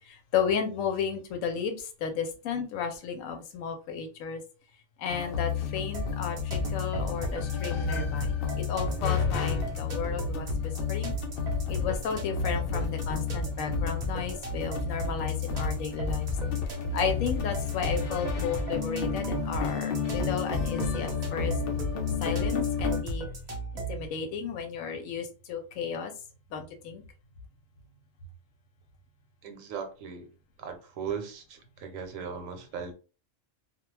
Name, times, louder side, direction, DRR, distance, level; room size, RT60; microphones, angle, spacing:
voice 1, 0.3-4.4 5.0-6.4 6.7-8.3 8.7-11.1 11.7-16.3 16.9-21.5 22.2-23.3 23.9-26.1 26.5-27.0, left 7 dB, 80° left, 1.0 m, -33 dB
sound 1, 5.1-23.0, left 8 dB, 65° left, 0.6 m, -32 dB
sound 2, 5.9-24.1, right 2 dB, 45° right, 0.6 m, -35 dB
voice 2, 29.4-30.3 30.6-32.9, right 6 dB, 75° right, 1.0 m, -38 dB
2.3 x 2.2 x 3.1 m
omnidirectional pair, 1.4 m